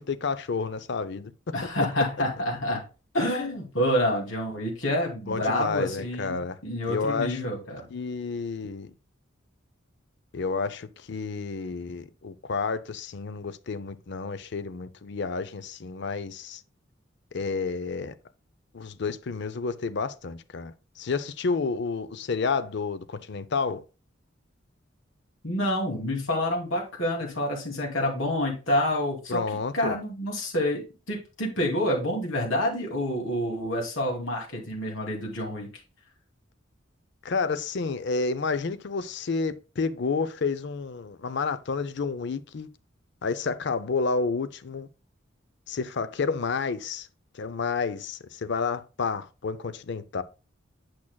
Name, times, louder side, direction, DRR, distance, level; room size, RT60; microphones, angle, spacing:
voice 1, 0.0-1.3 1.6-1.7 5.3-6.6 6.9-7.4 7.9-8.9 10.3-16.6 17.3-18.1 18.7-23.8 29.3-30.0 37.2-42.7 43.2-44.9 45.7-47.1 47.3-50.2, left 4 dB, 60° left, 0.5 m, -30 dB
voice 2, 1.5-2.8 3.1-7.9 25.4-29.4 29.7-35.7, left 1 dB, 85° left, 2.6 m, -28 dB
8.5 x 6.0 x 2.2 m
head